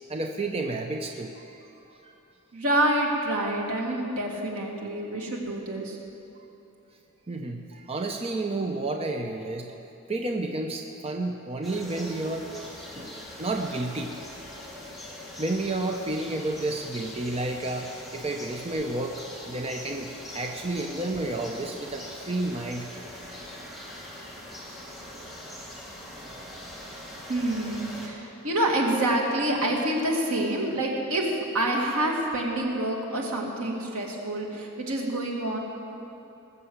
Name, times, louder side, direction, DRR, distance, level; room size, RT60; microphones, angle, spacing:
voice 1, 0.1-2.1 7.3-9.8 10.1-14.2 15.4-22.9 26.1-26.4, right 2 dB, 25° right, 3 dB, 0.6 m, -31 dB
voice 2, 2.5-6.0 27.3-35.6, right 1 dB, 80° right, -1 dB, 2.2 m, -27 dB
sound 1, 11.6-28.1, left 1 dB, ahead, 1.8 m, -42 dB
19.0 x 7.0 x 7.9 m, 2.9 s
head